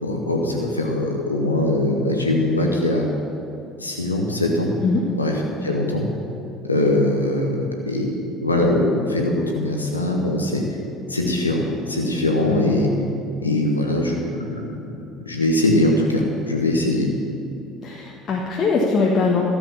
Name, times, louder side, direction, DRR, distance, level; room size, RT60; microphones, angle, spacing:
voice 1, 0.0-3.1 3.8-4.7 5.1-6.1 6.6-10.6 11.1-12.9 13.4-14.7 15.2-17.1, left 1 dB, 90° left, 0 dB, 1.1 m, -21 dB
voice 2, 17.8-19.4, left 4 dB, 40° left, -2 dB, 1.6 m, -21 dB
13.5 x 7.9 x 7.4 m, 2.8 s
figure-of-eight pair, 60°, 0 cm